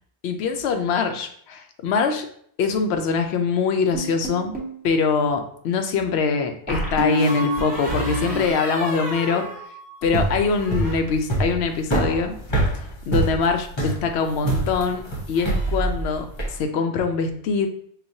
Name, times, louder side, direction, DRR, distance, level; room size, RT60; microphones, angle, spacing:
voice 1, 0.2-2.3 2.6-4.5 4.8-9.5 10.0-12.4 12.8-17.7, left 5 dB, 75° left, 6 dB, 0.8 m, -23 dB
sound 1, 3.9-4.8 6.7-10.2 10.5-10.9, equal, 10° right, 0.8 m, -28 dB
sound 2, 10.0-16.6, right 2 dB, 30° left, 0.7 m, -25 dB
5.8 x 2.3 x 2.6 m, 0.63 s
omnidirectional pair, 1.1 m